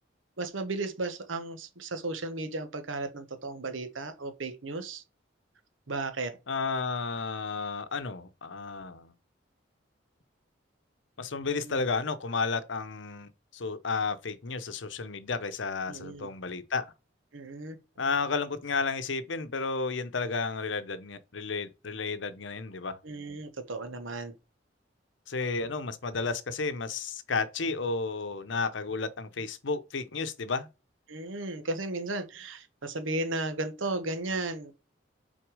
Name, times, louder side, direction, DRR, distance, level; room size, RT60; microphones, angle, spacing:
voice 1, 0.4-5.0 5.9-6.4 11.6-11.8 15.9-16.3 17.3-17.8 23.0-24.3 31.1-34.8, right 2 dB, 90° right, 1.1 m, -35 dB
voice 2, 6.5-9.1 11.2-16.9 18.0-23.0 25.3-30.7, left 4 dB, 75° left, 0.8 m, -32 dB
6.1 x 4.4 x 4.8 m
head